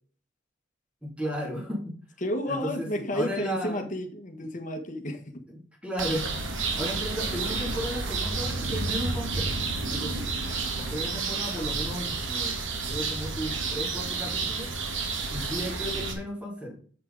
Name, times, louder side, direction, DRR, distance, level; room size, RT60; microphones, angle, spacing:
voice 1, 1.0-2.0 2.5-3.8 5.5-6.4 6.7-10.3 10.7-14.7 15.3-16.8, equal, 5° right, -2 dB, 2.7 m, -35 dB
voice 2, 2.2-5.3, equal, 40° left, 4 dB, 1.4 m, -31 dB
sound 1, 6.0-16.1, right 4 dB, 85° right, 1.5 m, -30 dB
7.4 x 5.5 x 4.0 m, 0.44 s
head